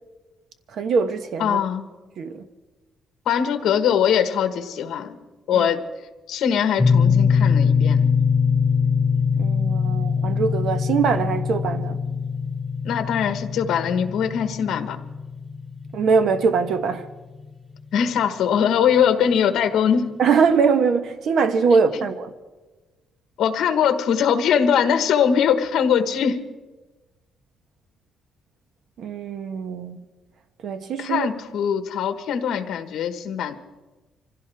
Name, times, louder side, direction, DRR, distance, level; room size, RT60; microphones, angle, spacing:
voice 1, 0.7-1.6 2.2-2.4 5.5-5.7 9.4-12.0 15.9-17.0 20.2-22.3 29.0-30.0 30.6-31.3, right 5 dB, 60° right, 1.2 m, -22 dB
voice 2, 1.4-1.8 3.3-5.2 5.5-5.8 6.3-8.1 12.8-15.0 17.9-20.1 21.9-22.1 23.4-26.4 31.0-33.5, left 8 dB, 70° left, 1.4 m, -21 dB
sound 1, 6.8-16.7, left 6 dB, 10° left, 0.7 m, -22 dB
25.5 x 16.0 x 3.5 m
cardioid pair, 155°, 0 cm